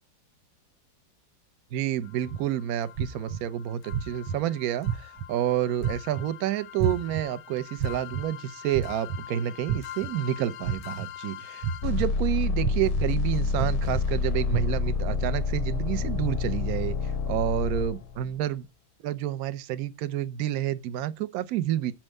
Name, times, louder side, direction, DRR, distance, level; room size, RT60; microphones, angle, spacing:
voice 1, 1.7-18.7 19.0-21.9, right 11 dB, 65° right, 0.9 m, -29 dB
sound 1, 2.1-2.2 2.9-3.0 3.3-3.4 3.8-18.3, left 4 dB, 75° left, 1.2 m, -31 dB
sound 2, 2.3-2.4 3.0-3.4 3.9-4.4 4.8-5.3 5.8-6.2 6.8-7.2 7.8-8.2 8.7-9.2 9.7-10.1 10.6-11.1 11.6-12.0 12.6-13.0 13.6-14.0 14.5-14.9, right 7 dB, 85° right, 1.4 m, -29 dB
5.9 x 4.5 x 6.4 m
omnidirectional pair, 2.1 m